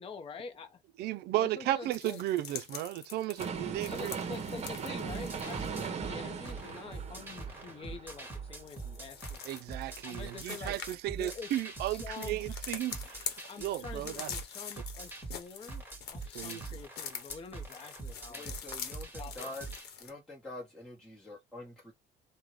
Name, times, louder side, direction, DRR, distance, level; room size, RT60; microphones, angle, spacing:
voice 1, 0.0-0.8 1.3-2.2 3.9-9.4 10.0-10.8 11.2-12.4 13.5-15.8 16.1-18.5 19.1-19.5, left 5 dB, 35° left, 0.6 m, -46 dB
voice 2, 1.0-4.2 9.5-14.3 16.3-16.6, right 14 dB, 70° right, 0.4 m, -34 dB
walking in the forrest, 1.9-5.9 8.5-20.1, left 7 dB, 75° left, 0.9 m, -45 dB
sound 1, 3.4-9.4 9.8-9.9, right 6 dB, 40° right, 0.8 m, -39 dB
sound 2, 5.1-19.8, right 4 dB, 10° right, 1.4 m, -44 dB
voice 3, 18.3-21.9, left 2 dB, 5° left, 1.1 m, -46 dB
3.6 x 2.2 x 3.1 m
cardioid pair, 110°, 17 cm